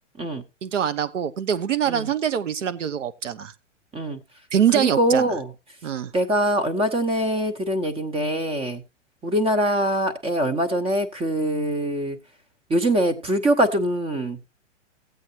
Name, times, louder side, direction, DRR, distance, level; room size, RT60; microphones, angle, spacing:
voice 1, 0.6-3.5 4.5-5.2 5.8-6.1, right 9 dB, 80° right, 1.0 m, -24 dB
voice 2, 4.7-5.5 6.1-8.8 9.2-12.2 12.7-14.5, right 1 dB, 15° right, 1.0 m, -23 dB
15.0 x 8.1 x 2.9 m
hypercardioid pair, 130°, 37 cm